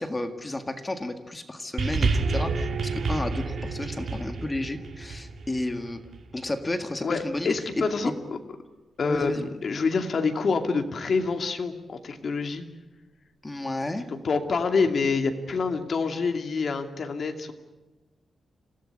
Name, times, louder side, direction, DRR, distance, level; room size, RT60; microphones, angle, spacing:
voice 1, 0.0-6.0 6.3-8.1 9.0-9.4 13.4-14.1, left 2 dB, 15° left, 7 dB, 1.8 m, -32 dB
sound 1, 1.8-6.3 7.2-7.3, right 4 dB, 60° right, 2.7 m, -29 dB
voice 2, 7.0-8.4 9.0-12.6 14.1-17.5, left 4 dB, 50° left, 6 dB, 2.5 m, -27 dB
27.0 x 17.0 x 9.9 m, 1.2 s
wide cardioid pair, 155°, 0 cm